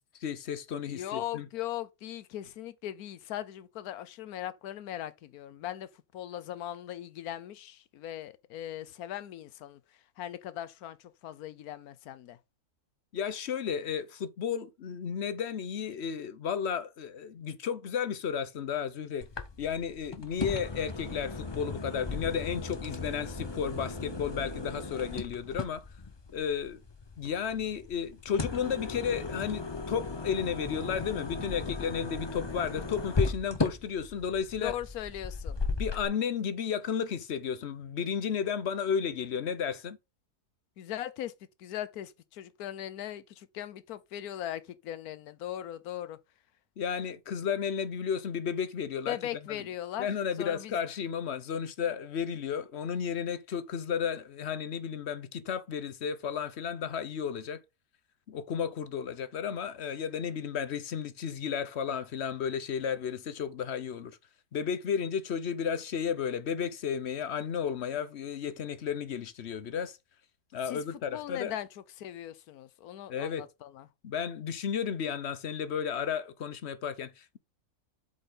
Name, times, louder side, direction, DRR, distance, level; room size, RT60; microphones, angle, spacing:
voice 1, 0.2-1.5 13.1-19.3 19.6-25.8 26.3-26.8 27.2-34.7 35.7-40.0 46.8-49.2 50.0-57.6 58.3-64.1 64.5-70.0 70.5-71.5 73.1-73.5 74.0-77.4, left 7 dB, 55° left, 0.9 m, -33 dB
voice 2, 0.9-12.4 34.6-35.6 40.8-41.3 41.6-46.2 49.1-50.1 50.4-50.8 70.6-71.7 72.0-73.9, left 12 dB, 70° left, 1.2 m, -39 dB
sound 1, 19.2-36.0, left 3 dB, 25° left, 0.6 m, -36 dB
8.1 x 5.3 x 3.8 m
omnidirectional pair, 1.7 m